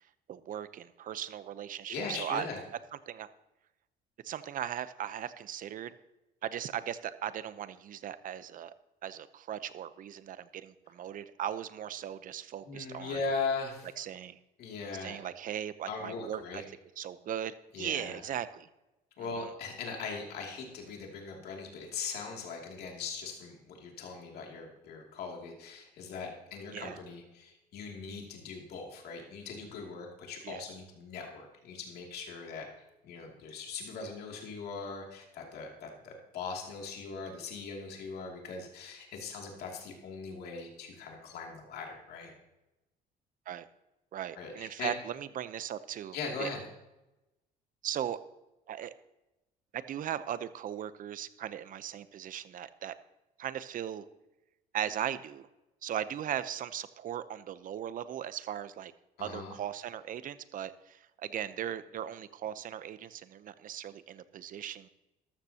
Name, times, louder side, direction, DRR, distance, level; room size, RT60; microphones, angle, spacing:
voice 1, 0.3-2.5 3.1-3.3 4.2-5.9 6.4-8.7 9.0-13.2 14.0-14.4 15.0-16.6 17.0-18.7 26.7-27.0 30.4-30.6 43.5-43.7 44.1-46.5 47.8-48.2 48.7-48.9 49.7-52.9 53.4-54.0 54.7-55.5 55.8-58.9 59.2-64.9, right 10 dB, 55° right, 14 dB, 0.8 m, -38 dB
voice 2, 1.9-2.6 12.6-13.9 14.6-15.2 15.9-16.6 17.7-18.2 19.2-32.7 33.0-42.3 44.4-44.9 46.1-46.7 59.2-59.6, left 4 dB, 70° left, 0 dB, 2.7 m, -40 dB
13.5 x 13.0 x 2.9 m, 0.99 s
cardioid pair, 110°, 17 cm